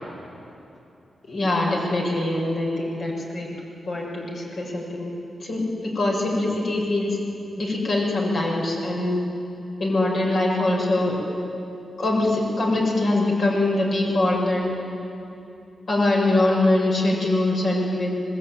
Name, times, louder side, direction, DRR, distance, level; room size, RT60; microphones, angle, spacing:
voice 1, 1.3-3.5 3.9-5.1 5.4-5.7 5.9-7.2 7.6-9.2 9.8-11.1 12.0-14.7 15.9-18.2, left 2 dB, 60° left, -2 dB, 6.7 m, -23 dB
25.5 x 20.0 x 9.2 m, 2.8 s
cardioid pair, 85°, 0 cm